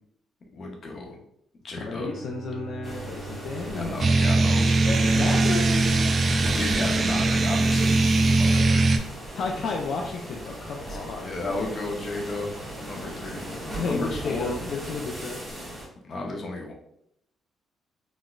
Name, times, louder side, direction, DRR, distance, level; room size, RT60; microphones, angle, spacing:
voice 1, 0.5-1.2 1.6-2.1 3.6-4.9 6.2-8.9 10.9-12.5 12.9-13.5 13.8-14.7 16.0-16.7, left 2 dB, 50° left, 1 dB, 0.8 m, -34 dB
voice 2, 1.7-4.0 4.8-6.1 8.4-8.8 9.4-11.6 13.7-15.4, left 4 dB, 70° left, 0 dB, 0.4 m, -32 dB
Bowed string instrument, 1.8-6.3, right 3 dB, 65° right, 0.9 m, -41 dB
sound 1, 2.8-15.9, right 1 dB, 10° right, 1.1 m, -37 dB
sound 2, 4.0-9.0, right 2 dB, 45° right, 0.3 m, -21 dB
3.9 x 2.0 x 2.4 m, 0.73 s
cardioid pair, 90°, 0 cm